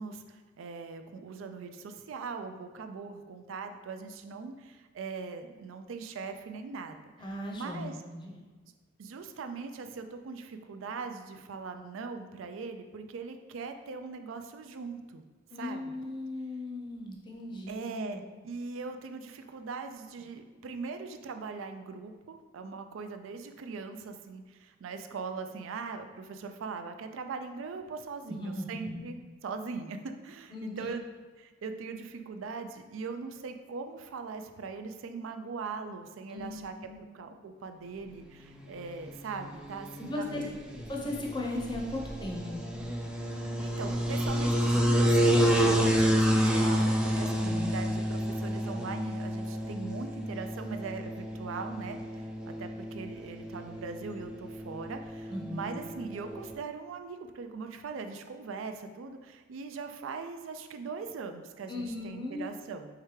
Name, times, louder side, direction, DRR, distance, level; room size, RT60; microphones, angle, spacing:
voice 1, 0.0-8.0 9.0-15.2 15.6-15.9 17.7-29.2 29.4-31.0 31.4-36.7 37.1-40.6 43.6-62.9, right 4 dB, 75° right, 7 dB, 0.4 m, -40 dB
voice 2, 7.2-8.4 15.5-18.2 28.3-29.0 30.5-30.9 36.3-37.1 40.0-40.4 40.9-42.6 47.4-47.8 55.3-55.7 61.7-62.5, left 1 dB, 25° left, -1 dB, 0.6 m, -37 dB
sound 1, 38.5-56.5, equal, 5° right, 0.3 m, -30 dB
4.7 x 3.2 x 3.2 m, 1.3 s
head